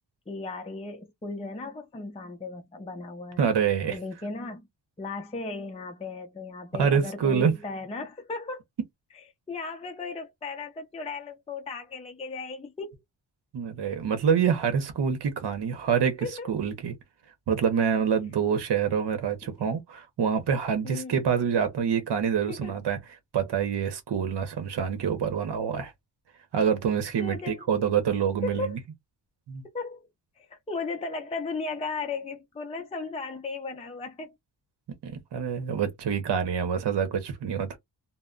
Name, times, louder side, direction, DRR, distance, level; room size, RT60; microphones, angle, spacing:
voice 1, 0.3-3.4 3.9-4.7 5.0-8.6 9.5-12.9 16.2-16.5 20.8-21.3 22.5-22.7 27.2-27.7 28.4-28.8 29.6-30.1 30.4-34.3, left 3 dB, 15° left, 0.4 m, -36 dB
voice 2, 3.4-4.0 6.8-7.5 13.5-17.0 17.5-23.0 23.3-25.9 26.5-28.8 29.5-29.6 35.0-37.8, right 7 dB, 65° right, 0.8 m, -26 dB
2.1 x 2.0 x 3.6 m
wide cardioid pair, 120°, 43 cm